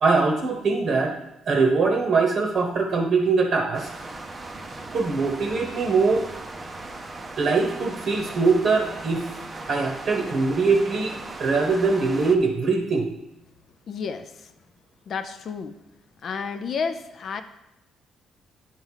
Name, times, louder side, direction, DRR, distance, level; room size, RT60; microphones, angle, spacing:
voice 1, 0.0-1.2 1.5-3.9 4.9-6.2 7.4-9.2 9.7-13.1, right 4 dB, 40° right, 2 dB, 1.0 m, -22 dB
sound 1, 3.7-12.4, right 2 dB, 15° right, 0.7 m, -38 dB
voice 2, 13.9-14.5 15.1-15.7 16.2-17.4, left 5 dB, 40° left, 9 dB, 0.5 m, -31 dB
10.5 x 4.7 x 5.6 m, 0.90 s
cardioid pair, 175°, 0 cm